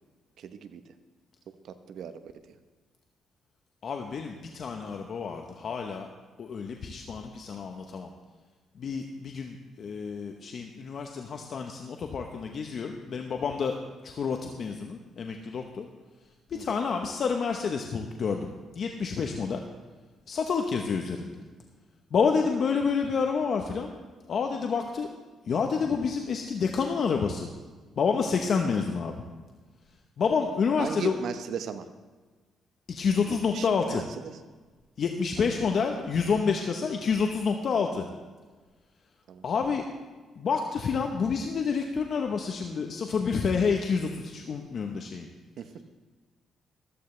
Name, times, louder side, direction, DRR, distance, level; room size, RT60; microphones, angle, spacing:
voice 1, 0.4-0.8 1.6-2.6 16.5-16.7 30.8-31.9 33.3-34.4 35.4-36.1 39.3-39.4 45.6-45.7, right 7 dB, 70° right, 10 dB, 0.9 m, -38 dB
voice 2, 3.8-6.1 6.4-8.1 8.8-13.7 14.0-15.9 16.5-19.6 20.3-21.3 22.1-23.9 24.3-25.1 25.5-27.5 28.0-29.1 30.2-31.2 32.9-34.0 35.0-38.0 39.4-39.8 40.4-45.3, left 5 dB, 55° left, 3 dB, 0.9 m, -28 dB
14.0 x 14.0 x 3.3 m, 1.3 s
cardioid pair, 90°, 0 cm